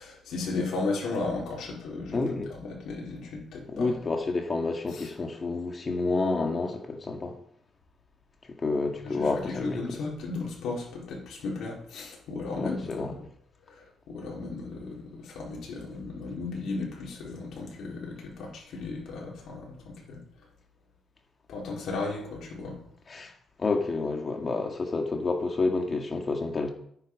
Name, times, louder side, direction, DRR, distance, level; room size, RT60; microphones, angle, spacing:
voice 1, 0.0-4.0 4.9-5.1 9.0-13.2 13.7-20.2 21.5-22.8, left 3 dB, 70° left, 4.8 m, -35 dB
voice 2, 2.1-2.5 3.7-7.4 8.6-10.0 12.6-13.1 23.1-23.3 23.6-26.7, left 3 dB, 35° left, 2.1 m, -29 dB
10.0 x 9.4 x 5.0 m
cardioid pair, 90°, 0 cm